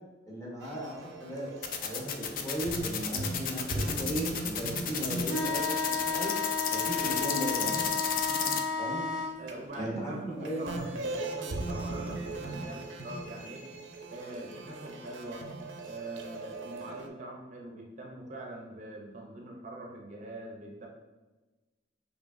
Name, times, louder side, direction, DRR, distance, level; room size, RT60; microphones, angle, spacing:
voice 1, 0.3-1.5 1.8-6.3 6.7-8.0 8.8-9.0 9.8-10.7, right 1 dB, 15° left, -5 dB, 0.9 m, -36 dB
sound 1, 0.6-6.9 7.3-9.2 9.5-17.1, right 2 dB, 90° right, 0.5 m, -39 dB
sound 2, 1.6-8.6, left 8 dB, 50° left, 0.3 m, -32 dB
sound 3, 5.2-9.3, left 4 dB, 80° left, 0.9 m, -32 dB
voice 2, 8.2-8.6 9.4-13.7 14.1-15.5 15.8-20.9, right 2 dB, 40° right, 0 dB, 0.5 m, -43 dB
4.7 x 2.7 x 2.5 m, 1.2 s
head